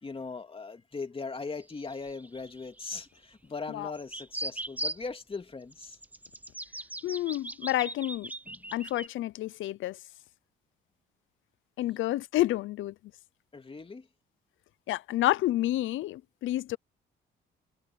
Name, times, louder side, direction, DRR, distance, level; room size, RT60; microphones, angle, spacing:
voice 1, 0.0-6.0 8.5-8.7 11.8-12.0 13.5-14.1, left 4 dB, 25° left, 2.9 m, -39 dB
sound 1, 1.6-3.2 3.9-5.0 5.7-9.1, right 1 dB, 10° right, 0.9 m, -39 dB
voice 2, 7.0-8.3 8.7-10.0 11.8-12.9 14.9-16.8, left 15 dB, 80° left, 0.6 m, -29 dB
cardioid pair, 90°, 20 cm